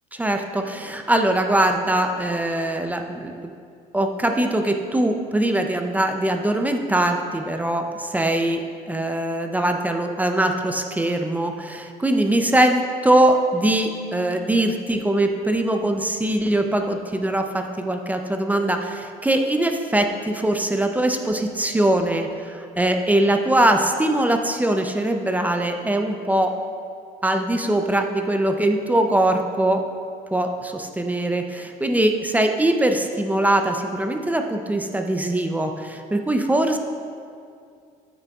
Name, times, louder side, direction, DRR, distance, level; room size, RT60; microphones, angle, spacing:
voice 1, 0.1-3.3 3.9-26.6 27.2-29.8 30.3-36.8, right 1 dB, 10° right, 5 dB, 0.5 m, -22 dB
9.0 x 8.6 x 2.4 m, 2.4 s
cardioid pair, 110°, 17 cm